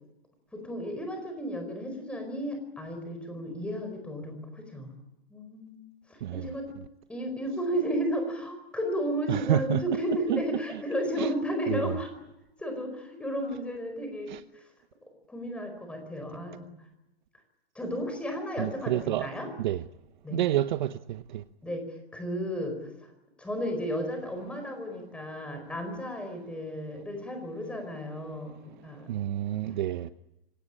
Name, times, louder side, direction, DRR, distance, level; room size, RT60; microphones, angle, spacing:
voice 1, 0.5-4.9 5.3-5.8 6.1-6.7 7.1-12.1 12.6-14.3 15.3-16.7 17.7-19.5 20.2-20.4 21.6-22.9 23.4-29.1, equal, 5° left, 4.7 m, -33 dB
voice 2, 9.3-10.0 10.3-10.8 11.2-11.3 11.7-12.0 14.3-14.4 18.6-19.3 19.6-19.8 20.3-20.9 29.1-30.1, right 13 dB, 50° right, 0.8 m, -29 dB
25.0 x 17.5 x 9.8 m
hypercardioid pair, 165°, 31 cm